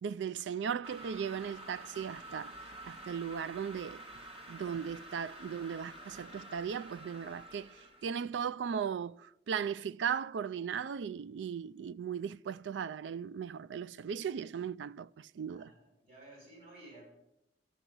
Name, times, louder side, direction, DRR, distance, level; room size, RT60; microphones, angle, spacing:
voice 1, 0.0-2.5 2.8-4.0 4.5-7.7 8.0-15.7, right 7 dB, 80° right, 0.3 m, -37 dB
sound 1, 0.8-8.2, right 1 dB, 35° right, 1.5 m, -49 dB
voice 2, 15.5-17.0, right 2 dB, 55° right, 6.1 m, -54 dB
13.0 x 6.1 x 7.9 m
head